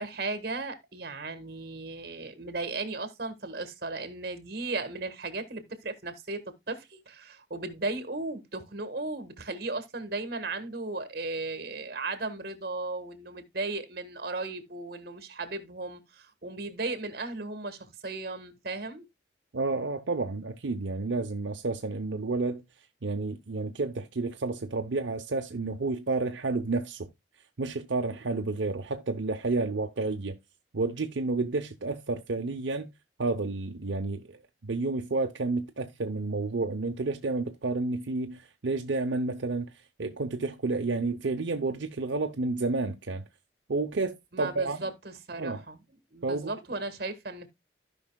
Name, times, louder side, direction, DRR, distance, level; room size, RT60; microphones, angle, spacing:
voice 1, 0.0-19.0 44.3-45.8 46.1-47.5, right 3 dB, 55° right, 1.4 m, -36 dB
voice 2, 19.5-22.6 23.0-27.1 27.6-30.4 30.7-32.9 33.2-39.7 40.0-43.2 43.7-44.9 45.4-45.6 46.2-46.5, right 3 dB, 80° right, 0.7 m, -30 dB
15.5 x 5.5 x 2.2 m
head